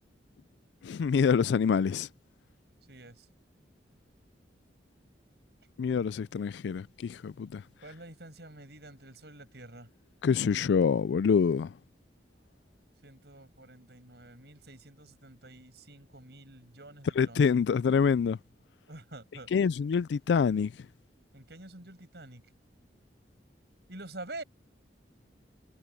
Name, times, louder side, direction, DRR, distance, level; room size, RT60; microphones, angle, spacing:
voice 1, 0.8-2.1 5.8-7.6 10.2-11.7 17.2-18.4 19.5-20.7, left 6 dB, 75° left, 0.3 m, -26 dB
voice 2, 2.9-3.3 7.8-9.9 13.0-17.6 18.9-19.5 21.3-22.4 23.9-24.4, right 2 dB, 65° right, 6.9 m, -47 dB
head